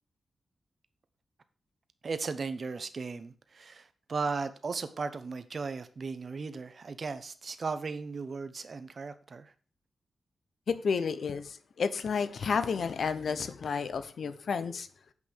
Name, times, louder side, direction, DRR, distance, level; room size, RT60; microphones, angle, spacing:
voice 1, 2.0-9.5, right 4 dB, 40° right, 11 dB, 0.9 m, -36 dB
voice 2, 10.7-14.9, left 5 dB, 60° left, 12 dB, 0.9 m, -31 dB
8.4 x 5.5 x 6.6 m, 0.40 s
wide cardioid pair, 155°, 0 cm